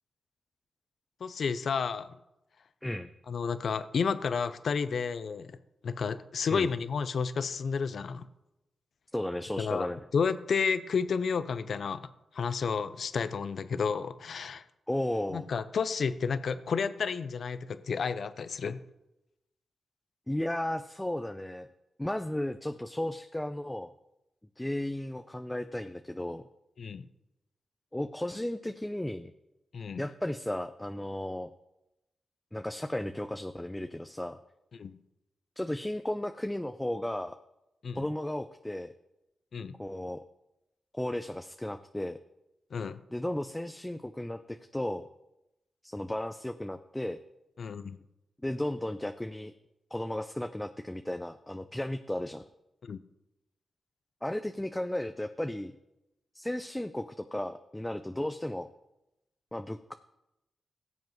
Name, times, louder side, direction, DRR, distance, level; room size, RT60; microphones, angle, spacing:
voice 1, 1.2-2.1 3.3-5.6 5.8-8.3 9.6-12.1 12.3-14.6 15.3-18.8 26.8-27.0 29.7-30.0 34.7-35.0 37.8-38.1 39.5-39.7 42.7-43.0 47.6-48.0 52.8-53.0, left 5 dB, 65° left, 13 dB, 0.5 m, -31 dB
voice 2, 9.1-10.0 14.9-15.5 20.3-21.7 22.0-23.9 24.6-26.4 27.9-29.3 30.0-31.5 32.5-34.4 35.6-37.4 37.9-38.9 39.8-40.2 40.9-42.2 43.1-45.1 45.8-47.2 48.4-49.5 49.9-52.4 54.2-55.7 56.3-58.7 59.5-59.9, left 1 dB, 10° left, 8 dB, 0.6 m, -34 dB
17.5 x 7.3 x 3.1 m, 0.90 s
cardioid pair, 50°, 0 cm